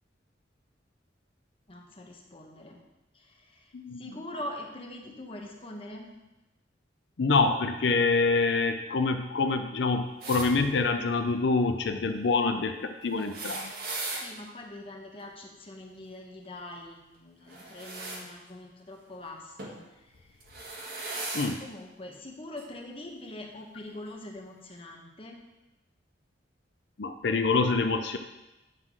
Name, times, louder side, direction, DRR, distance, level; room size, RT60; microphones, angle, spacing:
voice 1, 1.7-2.8 3.1-3.7 4.0-6.1 14.1-19.8 20.1-20.2 21.6-25.4, left 1 dB, 30° left, 0 dB, 1.2 m, -43 dB
voice 2, 3.7-4.1 7.2-13.7 21.3-21.6 27.0-28.2, left 3 dB, 65° left, 7 dB, 0.5 m, -26 dB
sound 1, 10.2-10.5 13.1-14.3 17.5-18.2 19.6-19.8 20.4-21.5 22.6-22.7 23.9-24.0, right 2 dB, 55° right, 1.5 m, -37 dB
9.3 x 3.8 x 6.1 m, 1.0 s
head